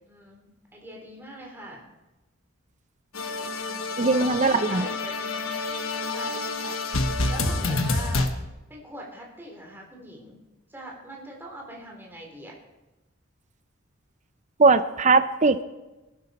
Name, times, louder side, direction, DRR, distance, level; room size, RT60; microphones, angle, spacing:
voice 1, 0.1-1.8 3.6-4.0 4.4-5.6 6.0-8.3 8.7-10.4 10.7-12.5, equal, 10° right, -1 dB, 3.5 m, -42 dB
sound 1, 3.1-8.3, left 2 dB, 70° left, 1.3 m, -28 dB
voice 2, 4.0-4.8 14.6-15.6, right 3 dB, 35° right, 11 dB, 0.7 m, -20 dB
20.5 x 12.0 x 4.3 m, 1.1 s
head